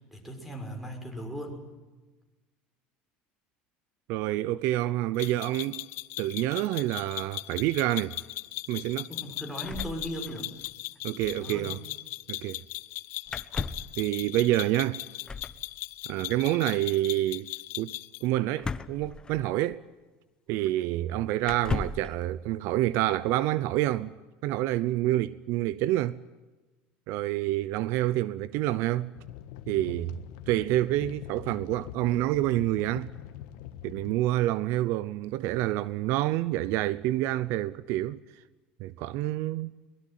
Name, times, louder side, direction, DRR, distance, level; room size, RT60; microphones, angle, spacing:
voice 1, 0.0-1.6 9.1-10.5 11.3-11.7, equal, 5° right, 6.2 m, -38 dB
voice 2, 4.1-5.9 6.2-8.2 8.7-9.1 11.0-11.8 12.3-12.6 14.0-15.0 16.1-17.5 17.8-19.8 20.5-24.1 24.4-26.2 27.1-29.1 29.7-30.1 30.5-33.1 33.8-38.2 38.8-39.7, right 15 dB, 65° right, 0.8 m, -28 dB
sound 1, 5.2-18.3, left 18 dB, 60° left, 0.7 m, -39 dB
sound 2, 9.6-10.7 11.0-11.1 11.2-11.4 13.3-14.0 15.2-15.6 18.6-19.7 20.6-20.7 21.4-22.1, left 4 dB, 15° left, 1.1 m, -35 dB
sound 3, 29.1-34.1, left 12 dB, 75° left, 1.5 m, -43 dB
22.5 x 20.5 x 9.4 m
cardioid pair, 135°, 5 cm